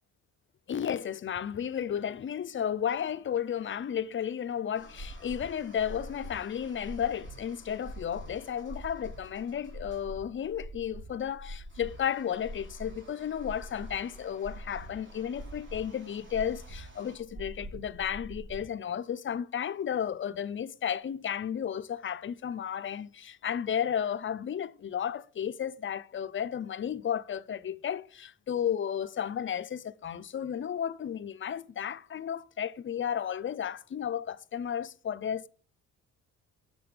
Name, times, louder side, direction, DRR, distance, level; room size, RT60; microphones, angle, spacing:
voice 1, 0.7-35.5, left 9 dB, 40° left, 0.7 m, -33 dB
sound 1, 3.1-17.2, right 2 dB, 40° right, 4.0 m, -59 dB
sound 2, 4.8-18.6, equal, 70° right, 5.5 m, -44 dB
7.9 x 6.7 x 5.0 m
cardioid pair, 90°, 30 cm